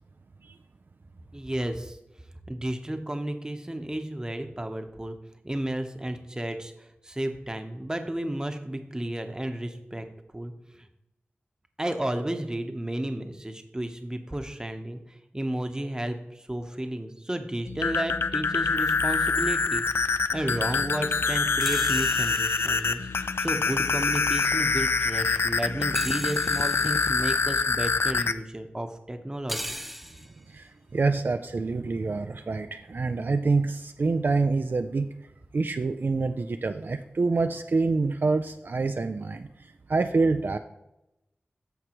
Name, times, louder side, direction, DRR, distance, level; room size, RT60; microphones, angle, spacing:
voice 1, 1.3-2.0 2.5-5.2 5.4-10.0 10.3-10.9 11.8-19.8 20.3-29.7, right 1 dB, 15° right, 6 dB, 0.9 m, -32 dB
sound 1, 17.7-28.3, left 4 dB, 75° left, 0.4 m, -25 dB
sound 2, 21.6-23.4 26.0-27.4 29.5-30.4, equal, ahead, 0.5 m, -38 dB
voice 2, 30.5-35.1 35.5-40.6, right 3 dB, 55° right, 7 dB, 0.4 m, -26 dB
14.0 x 4.7 x 3.0 m, 0.89 s
wide cardioid pair, 65°, 4 cm